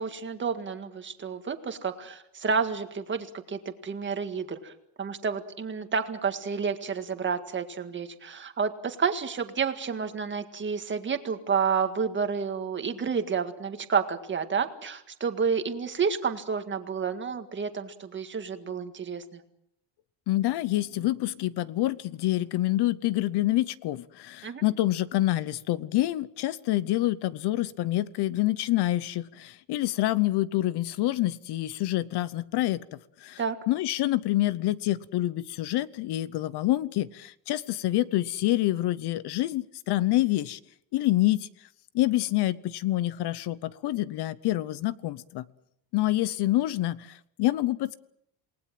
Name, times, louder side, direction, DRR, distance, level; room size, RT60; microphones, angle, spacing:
voice 1, 0.0-4.7 5.0-19.4 24.4-24.6 33.4-33.6, right 6 dB, 25° right, 7 dB, 1.8 m, -30 dB
voice 2, 20.3-32.8 33.2-33.4 33.7-40.6 40.9-41.5 41.9-45.4 45.9-47.9, left 16 dB, 65° left, 18 dB, 0.9 m, -27 dB
28.0 x 19.0 x 7.6 m, 0.74 s
cardioid pair, 165°, 43 cm